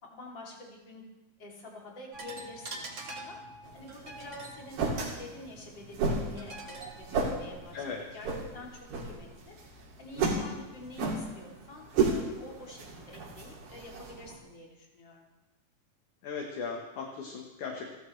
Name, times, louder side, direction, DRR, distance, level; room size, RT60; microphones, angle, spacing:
voice 1, 0.0-1.0 1.4-2.9 3.2-3.4 3.7-9.5 10.0-15.3, left 1 dB, 35° left, -2 dB, 3.4 m, -47 dB
sound 1, 2.1-8.2, right 2 dB, 45° right, 0.9 m, -46 dB
sound 2, 3.6-14.4, right 4 dB, 85° right, 4.4 m, -34 dB
voice 2, 7.7-8.0 16.2-18.0, left 5 dB, 65° left, 1 dB, 2.5 m, -37 dB
29.5 x 12.5 x 3.3 m, 1.1 s
omnidirectional pair, 4.1 m